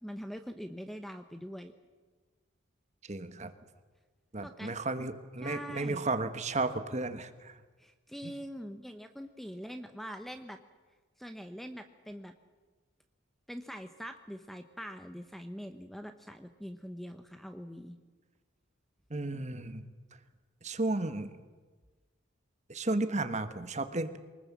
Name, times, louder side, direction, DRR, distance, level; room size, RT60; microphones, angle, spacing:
voice 1, 0.0-1.7 4.4-4.7 5.4-6.1 7.8-10.6 11.2-12.3 13.5-18.0, equal, ahead, 7 dB, 0.9 m, -43 dB
voice 2, 3.1-3.5 4.3-7.5 8.2-8.3 19.1-19.9 20.6-21.3 22.7-24.2, right 2 dB, 35° right, 9 dB, 1.3 m, -33 dB
24.0 x 20.0 x 7.4 m, 1.4 s
head